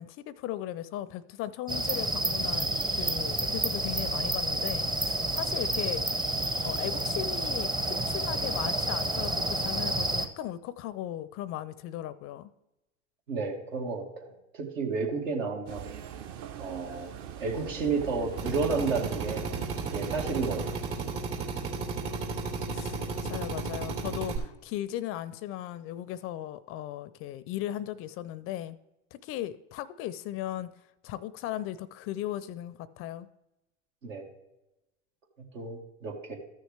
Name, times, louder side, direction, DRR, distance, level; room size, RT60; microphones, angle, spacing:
voice 1, 0.0-6.0 6.6-12.5 22.7-28.8 29.1-30.7 31.0-33.3, left 12 dB, 35° left, 16 dB, 0.4 m, -37 dB
sound 1, 1.7-10.2, right 1 dB, 10° right, 0.6 m, -30 dB
voice 2, 13.3-14.1 14.5-15.9 16.6-17.1 17.4-19.4 19.8-20.6 34.0-34.3 35.5-36.3, right 4 dB, 80° right, 1 dB, 2.2 m, -31 dB
sound 2, 15.7-20.8, right 8 dB, 45° right, 0.8 m, -42 dB
Drill, 18.4-24.4, right 4 dB, 65° right, 2.9 m, -34 dB
13.5 x 6.4 x 3.3 m, 0.95 s
hypercardioid pair, 100°, 38 cm